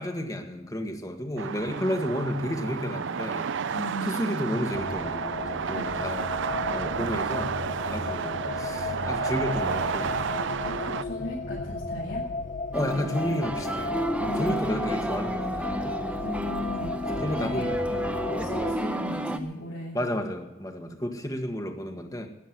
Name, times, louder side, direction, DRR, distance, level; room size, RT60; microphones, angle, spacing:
voice 1, 0.0-3.5 4.0-6.3 6.7-7.6 7.9-10.3 12.7-14.0 14.3-16.0 17.1-18.1 19.9-22.3, equal, 20° left, 5 dB, 1.8 m, -32 dB
sound 1, 1.4-11.0, right 6 dB, 65° right, 0.5 m, -31 dB
voice 2, 3.7-4.4 5.7-6.2 10.6-12.2 14.2-15.0 16.2-17.7 18.4-20.0, left 1 dB, 70° left, -7 dB, 6.1 m, -37 dB
sound 2, 4.7-18.7, left 3 dB, 40° left, 0.9 m, -34 dB
sound 3, 12.7-19.4, right 1 dB, 5° right, 0.8 m, -31 dB
13.5 x 10.0 x 7.7 m, 0.99 s
head